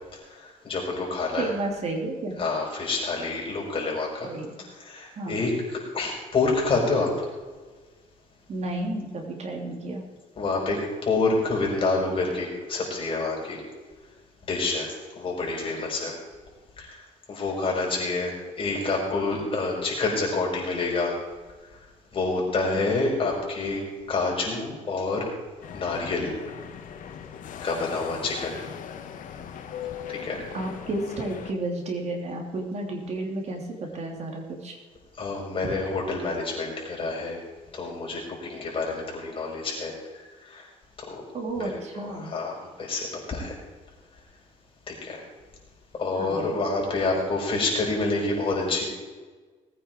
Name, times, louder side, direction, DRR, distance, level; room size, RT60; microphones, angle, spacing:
voice 1, 0.6-1.5 2.4-4.3 4.8-7.1 10.4-13.6 14.5-14.9 15.2-16.1 16.8-16.9 17.3-18.3 18.6-21.1 22.1-23.8 24.1-25.3 25.7-26.3 27.6-28.6 30.1-30.4 35.2-37.4 37.7-39.9 40.5-40.6 41.6-41.8 42.2-43.5 44.9-45.2 46.0-48.8, left 3 dB, 40° left, -2 dB, 5.6 m, -27 dB
voice 2, 1.4-2.4 4.2-4.6 5.2-5.4 8.5-10.0 30.5-34.8 41.3-42.3 46.2-46.6, right 2 dB, 50° right, 2 dB, 3.3 m, -32 dB
sound 1, 25.6-31.5, left 8 dB, 70° left, 1.4 m, -39 dB
19.0 x 9.2 x 4.7 m, 1.4 s
cardioid pair, 110°, 14 cm